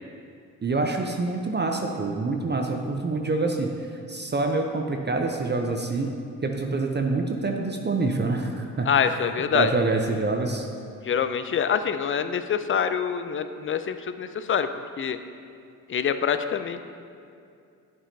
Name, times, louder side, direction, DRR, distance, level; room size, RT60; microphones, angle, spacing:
voice 1, 0.6-3.7 4.1-6.1 6.4-8.9 9.5-10.7, right 3 dB, 25° right, 3 dB, 0.6 m, -26 dB
voice 2, 8.9-9.7 11.0-14.7 15.0-15.2 15.9-16.8, left 7 dB, 30° left, 10 dB, 0.4 m, -25 dB
9.7 x 5.4 x 2.7 m, 2.4 s
hypercardioid pair, 40°, 43 cm